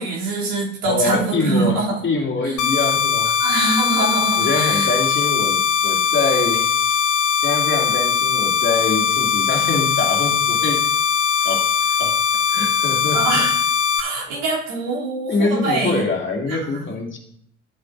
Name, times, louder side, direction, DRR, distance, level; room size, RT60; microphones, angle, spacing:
voice 1, 0.0-1.9 2.4-2.5 3.4-4.9 13.1-13.6 14.0-16.0 16.5-16.8, right 3 dB, 70° right, -5 dB, 3.1 m, -24 dB
voice 2, 0.8-3.3 4.4-6.7 7.4-10.8 11.4-11.7 12.0-12.2 12.5-13.2 15.3-17.2, left 3 dB, 30° left, 0 dB, 2.4 m, -24 dB
sound 1, 2.6-14.0, left 7 dB, 50° left, 1.5 m, -20 dB
12.5 x 8.1 x 2.6 m, 0.67 s
hypercardioid pair, 60°, 37 cm